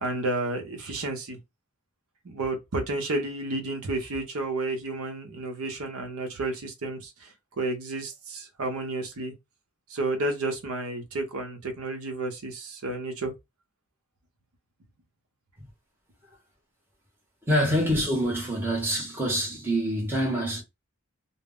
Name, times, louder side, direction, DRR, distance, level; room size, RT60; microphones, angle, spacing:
voice 1, 0.0-1.4 2.2-7.3 7.6-9.3 9.9-13.3, right 2 dB, 75° right, 0.7 m, -31 dB
voice 2, 17.5-20.6, equal, 10° right, 0.7 m, -26 dB
2.0 x 2.0 x 3.6 m
head